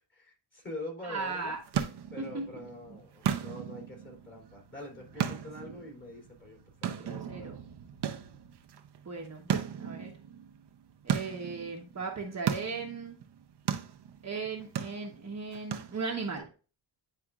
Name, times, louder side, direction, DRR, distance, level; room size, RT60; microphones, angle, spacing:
voice 1, 0.1-1.5 2.1-7.5, left 1 dB, 25° left, -1 dB, 3.0 m, -45 dB
voice 2, 1.0-1.6 2.3-2.4 2.9-3.0 5.3-5.8 6.8-7.6 9.0-9.5 9.7-10.1 11.0-13.2 14.2-16.5, right 4 dB, 35° right, 0 dB, 1.1 m, -37 dB
sound 1, 1.2-16.4, right 8 dB, 60° right, 0.8 m, -37 dB
9.8 x 4.3 x 2.4 m, 0.36 s
wide cardioid pair, 130°, 46 cm